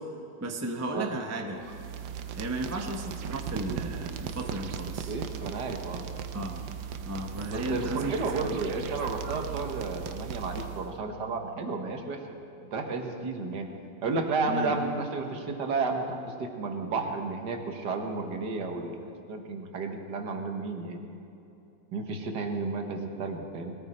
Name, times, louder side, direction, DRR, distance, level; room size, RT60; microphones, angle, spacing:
voice 1, 0.4-1.6 2.3-5.1 6.3-6.7 7.0-8.1 14.4-14.7, right 1 dB, 15° right, 2 dB, 0.7 m, -34 dB
sound 1, 1.6-11.0, right 8 dB, 85° right, 1.5 m, -37 dB
voice 2, 5.1-6.0 7.4-12.2 12.7-13.7 14.0-21.0 21.9-23.8, right 3 dB, 65° right, 4 dB, 1.8 m, -32 dB
20.5 x 14.0 x 4.3 m, 2.7 s
omnidirectional pair, 2.0 m